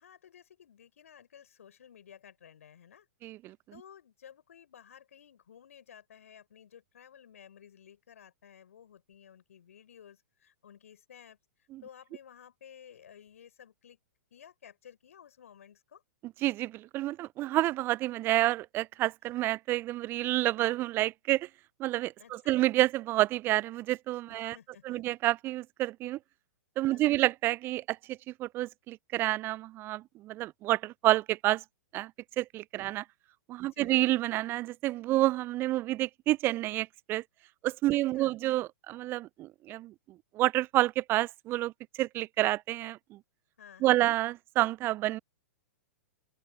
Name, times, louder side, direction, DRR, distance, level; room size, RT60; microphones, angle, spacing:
voice 1, 0.0-3.1 3.7-14.0 14.3-16.0 22.2-22.5 24.3-25.0 26.8-27.2 32.8-32.9 33.6-34.0 37.9-38.3 43.6-44.1, left 9 dB, 65° left, 5.5 m, -55 dB
voice 2, 3.2-3.5 11.7-11.8 16.4-21.5 21.8-24.6 24.8-26.2 26.8-31.6 31.9-32.1 32.4-33.0 33.5-37.2 37.6-39.9 40.3-41.7 42.0-43.2 43.8-45.2, right 16 dB, 25° right, 0.5 m, -29 dB
open air
figure-of-eight pair, 110°, 8 cm